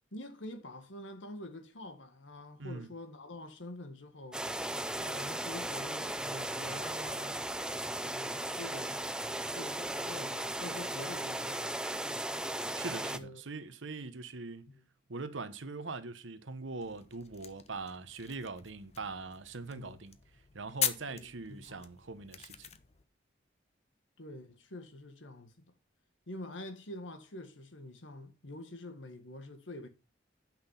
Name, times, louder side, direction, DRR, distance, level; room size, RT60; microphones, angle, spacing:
voice 1, 0.1-4.5 5.0-7.5 8.1-9.0 9.5-11.8 12.9-13.4 14.7-14.8 19.6-20.0 21.1-21.9 24.2-25.6 26.3-29.9, left 1 dB, 85° left, 1.7 m, -46 dB
sound 1, 4.3-13.2, right 1 dB, 5° right, 0.4 m, -36 dB
voice 2, 12.7-14.7 15.1-20.2 20.5-22.7, right 3 dB, 85° right, 1.1 m, -42 dB
sound 2, 16.8-23.1, left 9 dB, 35° left, 0.7 m, -41 dB
8.7 x 6.0 x 5.7 m
head